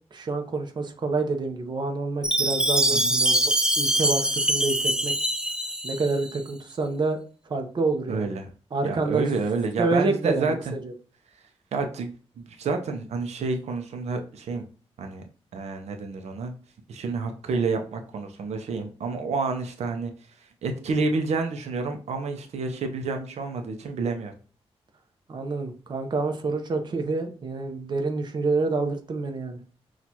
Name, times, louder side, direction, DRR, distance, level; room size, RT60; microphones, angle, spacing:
voice 1, 0.1-5.1 5.8-7.2 7.5-8.3 8.7-9.2 9.8-10.6 10.8-10.9 25.3-29.6, right 3 dB, 45° right, 5 dB, 0.7 m, -27 dB
Chime, 2.2-6.4, right 1 dB, 5° right, 0.4 m, -24 dB
voice 2, 8.1-8.5 8.8-10.7 11.7-14.6 15.0-15.2 15.5-16.5 16.9-20.1 20.6-24.3, right 4 dB, 90° right, 5 dB, 0.6 m, -29 dB
6.0 x 2.4 x 2.8 m, 0.39 s
wide cardioid pair, 135°, 11 cm